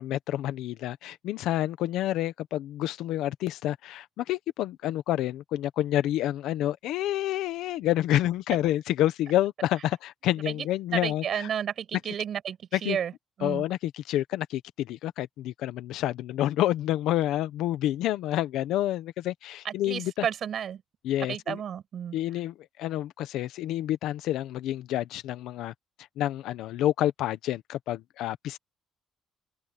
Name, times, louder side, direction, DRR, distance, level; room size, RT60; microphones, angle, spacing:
voice 1, 0.0-11.5 12.7-13.0 13.4-20.3 21.0-21.6 22.1-25.7 26.2-28.6, left 13 dB, 75° left, 1.1 m, -28 dB
voice 2, 10.9-13.1 13.4-13.6 19.6-20.8 21.3-22.2, right 9 dB, 40° right, 8.0 m, -32 dB
open air
cardioid pair, 175°, 0 cm